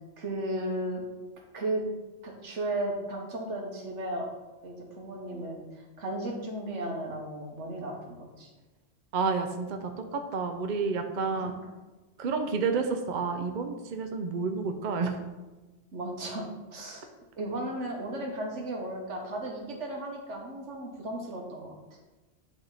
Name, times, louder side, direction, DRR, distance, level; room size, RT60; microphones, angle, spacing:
voice 1, 0.2-1.0 1.5-1.8 2.2-4.3 4.6-8.5 11.3-11.5 15.9-17.1 17.4-21.8, right 1 dB, 75° right, 0 dB, 1.6 m, -35 dB
voice 2, 9.1-11.5 12.2-15.2, right 4 dB, 50° right, 6 dB, 0.7 m, -30 dB
10.5 x 3.6 x 4.0 m, 1.2 s
omnidirectional pair, 1.2 m